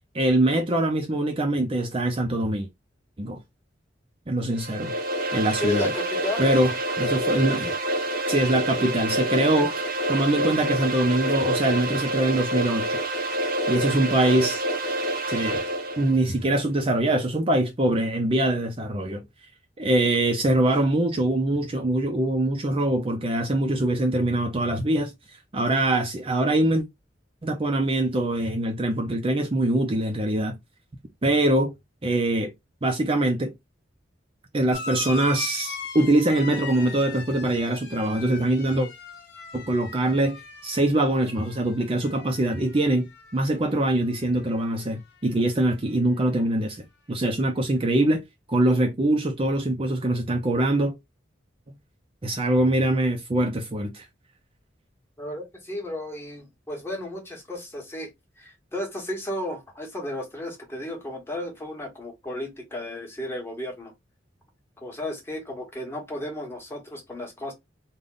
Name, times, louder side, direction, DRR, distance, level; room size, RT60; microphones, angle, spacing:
voice 1, 0.1-2.7 3.2-3.4 4.3-4.9 5.3-5.9 6.4-6.7 7.0-7.7 8.3-13.0 13.7-14.6 15.3-15.6 16.0-19.2 19.8-26.8 27.4-30.6 31.2-31.7 32.0-32.5 32.8-33.5 34.5-38.9 39.5-48.2 48.5-50.9 52.2-54.0, right 1 dB, 30° right, 0.6 m, -23 dB
sound 1, 4.5-16.2, right 1 dB, 50° right, 0.9 m, -27 dB
voice 2, 5.6-6.4 55.2-58.1 58.4-63.9 64.8-67.5, left 1 dB, 15° left, 1.3 m, -33 dB
sound 2, 34.7-43.7 44.0-44.8 45.9-46.0, left 4 dB, 60° left, 1.1 m, -40 dB
3.5 x 2.3 x 3.8 m
head